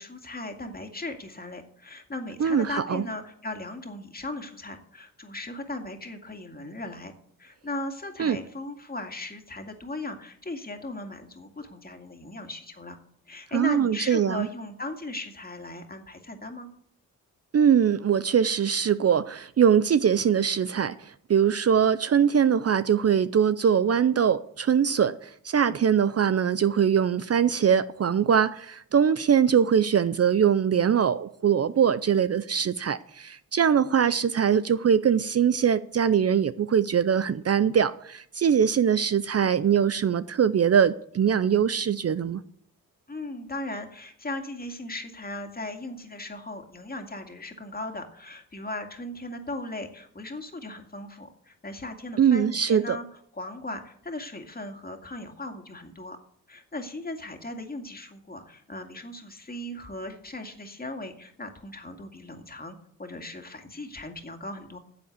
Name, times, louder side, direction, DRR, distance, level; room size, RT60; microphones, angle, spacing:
voice 1, 0.0-7.1 7.4-13.0 13.3-16.7 43.1-53.0 53.3-56.2 56.5-64.8, left 2 dB, 25° left, 2.2 m, -37 dB
voice 2, 2.4-3.0 8.2-8.4 13.5-14.5 17.5-42.4 52.2-53.0, right 8 dB, 45° right, 0.6 m, -22 dB
10.0 x 7.8 x 8.3 m
cardioid pair, 65°, 35 cm